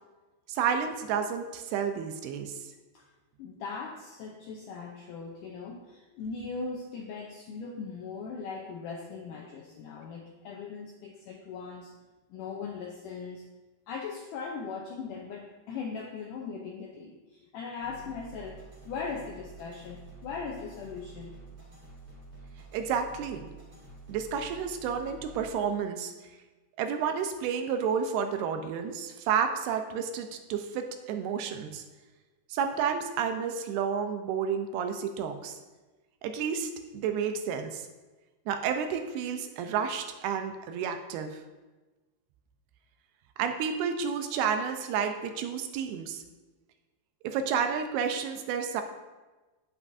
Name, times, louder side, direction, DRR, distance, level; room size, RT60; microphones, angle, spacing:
voice 1, 0.5-2.6 22.7-23.5 24.1-26.1 26.8-31.8 32.5-35.6 36.2-37.9 38.5-41.4 43.4-46.2 47.2-48.8, right 7 dB, 90° right, 6 dB, 2.7 m, -31 dB
voice 2, 3.4-11.9 12.3-13.5 13.9-21.4, left 5 dB, 85° left, 1 dB, 1.8 m, -39 dB
sound 1, 17.8-25.5, right 3 dB, 30° right, 2.3 m, -49 dB
16.0 x 6.1 x 2.6 m, 1.2 s
omnidirectional pair, 4.6 m